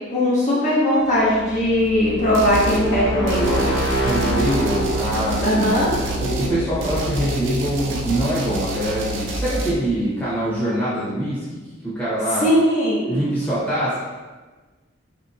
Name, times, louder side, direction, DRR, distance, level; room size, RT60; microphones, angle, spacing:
voice 1, 0.1-3.7 5.4-5.9 12.4-13.2, left 1 dB, 40° left, -8 dB, 1.0 m, -19 dB
sound 1, 1.1-9.9, right 1 dB, 85° left, 1.1 m, -27 dB
sound 2, 2.3-2.9 3.3-9.7, equal, 65° right, 0.5 m, -29 dB
voice 2, 4.0-5.7 6.2-11.5 11.8-12.5 13.1-14.0, right 1 dB, 10° left, -10 dB, 1.0 m, -24 dB
4.4 x 2.8 x 2.5 m, 1.3 s
head